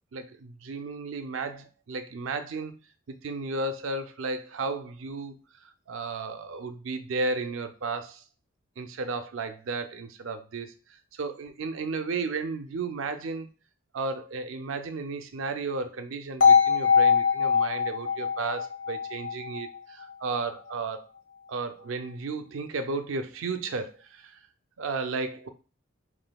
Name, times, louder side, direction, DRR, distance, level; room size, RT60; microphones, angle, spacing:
voice 1, 0.1-2.8 3.1-5.4 5.9-8.2 8.8-10.7 11.1-13.5 13.9-21.1 21.5-24.4 24.8-25.5, right 3 dB, 80° right, 9 dB, 0.5 m, -33 dB
sound 1, 16.4-20.4, left 6 dB, 85° left, 0.9 m, -23 dB
5.3 x 3.0 x 2.2 m, 0.35 s
head